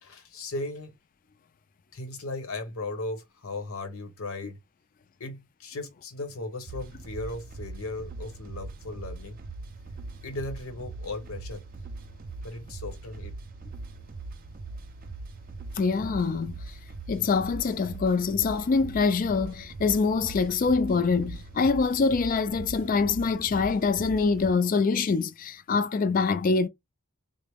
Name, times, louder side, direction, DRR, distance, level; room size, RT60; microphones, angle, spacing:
voice 1, 0.0-0.9 1.9-4.6 5.2-9.4 10.2-11.6 12.4-13.3, left 2 dB, 70° left, 0.9 m, -37 dB
sound 1, 6.7-24.5, right 3 dB, 40° right, 0.4 m, -41 dB
voice 2, 15.8-16.6 17.1-26.7, left 4 dB, 40° left, 0.3 m, -25 dB
3.8 x 2.0 x 3.4 m
head